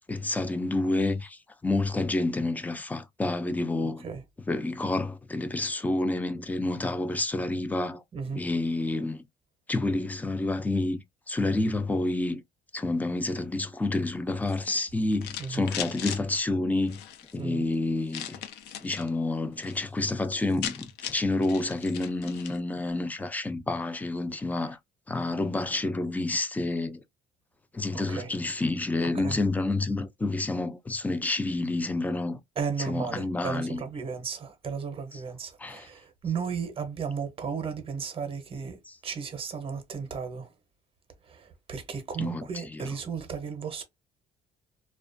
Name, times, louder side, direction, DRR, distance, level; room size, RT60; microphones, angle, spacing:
voice 1, 0.1-4.1 4.5-8.0 8.3-9.2 9.7-11.0 11.3-12.4 12.7-17.0 17.3-18.4 18.8-24.8 25.1-27.0 27.7-32.4 32.8-33.8 35.1-35.2 35.6-35.9 38.9-39.0 42.2-42.9, left 2 dB, 10° left, 0.3 m, -29 dB
voice 2, 8.1-8.4 15.4-15.6 17.4-17.7 27.9-28.3 29.0-29.4 32.6-38.8 39.0-40.5 41.3-43.8, right 6 dB, 35° right, 0.7 m, -34 dB
sound 1, 14.4-16.2 16.8-17.3 18.1-19.1 19.4-19.8 20.1-20.2 20.4-22.6, left 10 dB, 85° left, 0.4 m, -38 dB
2.3 x 2.2 x 2.5 m
cardioid pair, 110°, 17 cm